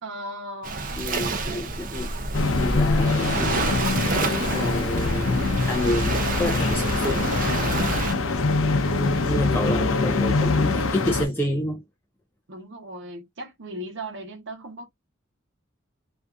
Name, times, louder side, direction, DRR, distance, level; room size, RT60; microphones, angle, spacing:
voice 1, 0.0-1.4 12.5-14.8, right 1 dB, 65° right, 1.0 m, -38 dB
Waves surf, 0.6-8.1, right 3 dB, 45° right, 0.5 m, -28 dB
voice 2, 1.0-2.1 2.6-3.9 4.5-7.3 8.9-11.8, left 1 dB, 10° left, 0.3 m, -29 dB
sound 1, 2.3-11.3, left 3 dB, 75° left, 0.6 m, -24 dB
2.6 x 2.3 x 2.4 m
head